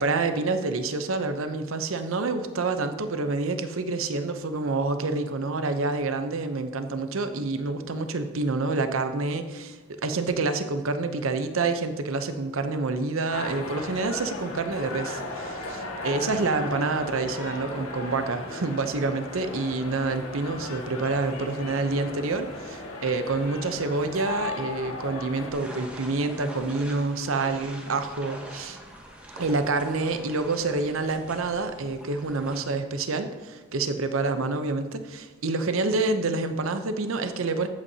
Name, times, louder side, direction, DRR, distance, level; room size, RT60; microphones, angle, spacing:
voice 1, 0.0-28.8 29.4-37.7, right 3 dB, 70° right, 8 dB, 0.7 m, -28 dB
sound 1, 13.3-25.5, left 2 dB, 80° left, 1.7 m, -36 dB
sound 2, 25.5-32.6, right 1 dB, 5° right, 1.1 m, -43 dB
14.5 x 8.3 x 2.8 m, 1.3 s
head